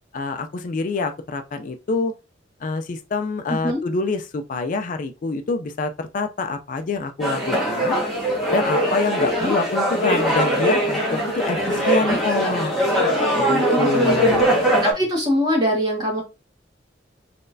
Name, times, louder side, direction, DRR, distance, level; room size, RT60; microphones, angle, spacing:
voice 1, 0.1-2.1 2.6-8.0 8.5-12.7 13.4-14.5, left 3 dB, 45° left, 0.4 m, -26 dB
voice 2, 3.5-3.8 9.2-9.5 11.1-11.2 11.6-12.3 13.4-14.4 14.8-16.2, equal, 25° right, 1.5 m, -24 dB
sound 1, 7.2-14.9, equal, ahead, 1.4 m, -21 dB
4.2 x 3.1 x 2.6 m
head